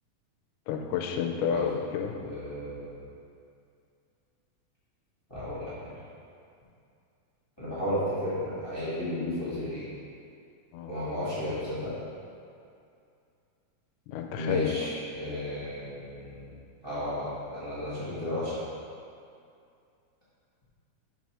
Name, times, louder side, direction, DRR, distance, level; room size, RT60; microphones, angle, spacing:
voice 1, 0.7-2.1 10.7-10.9 14.1-14.8, left 8 dB, 90° left, 3 dB, 2.2 m, -30 dB
voice 2, 2.1-3.0 5.3-5.9 7.6-9.9 10.9-11.9 14.3-16.5 16.8-18.7, left 1 dB, 35° left, -12 dB, 0.4 m, -33 dB
5.3 x 4.6 x 5.5 m, 2.5 s
omnidirectional pair, 3.6 m